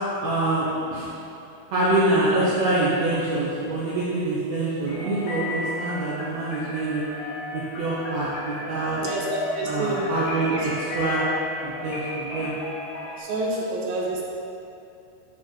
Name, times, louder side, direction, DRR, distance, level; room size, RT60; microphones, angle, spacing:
voice 1, 0.2-0.7 0.9-1.1 1.7-7.0 7.5-9.0 9.6-11.3 11.6-12.5, right 2 dB, 60° right, -10 dB, 2.1 m, -25 dB
sound 1, 4.9-13.2, left 2 dB, 70° left, 1.4 m, -34 dB
voice 2, 9.0-10.1 10.5-10.7 13.1-14.2, right 2 dB, 75° right, -3 dB, 2.9 m, -28 dB
10.0 x 4.6 x 4.7 m, 2.6 s
omnidirectional pair, 4.3 m